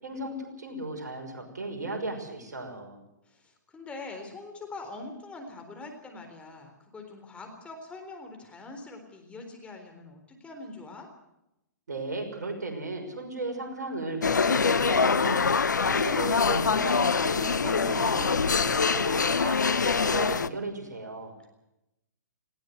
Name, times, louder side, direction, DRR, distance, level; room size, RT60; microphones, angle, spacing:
voice 1, 0.0-3.0 11.9-21.5, right 2 dB, 70° right, 4 dB, 5.9 m, -36 dB
voice 2, 3.2-11.1, left 3 dB, 10° left, 4 dB, 4.0 m, -43 dB
sound 1, 14.2-20.5, left 5 dB, 80° left, 0.9 m, -24 dB
19.5 x 17.5 x 8.0 m, 0.88 s
figure-of-eight pair, 120°, 10 cm